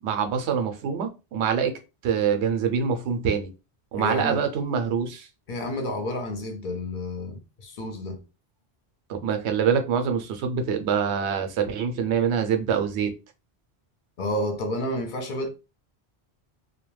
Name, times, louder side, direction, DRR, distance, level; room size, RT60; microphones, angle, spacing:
voice 1, 0.0-1.7 2.0-3.5 3.9-5.3 9.1-13.1, right 7 dB, 85° right, 0.9 m, -25 dB
voice 2, 3.9-4.4 5.5-8.2 14.2-15.5, left 1 dB, 55° left, 0.7 m, -30 dB
2.2 x 2.2 x 3.1 m
omnidirectional pair, 1.1 m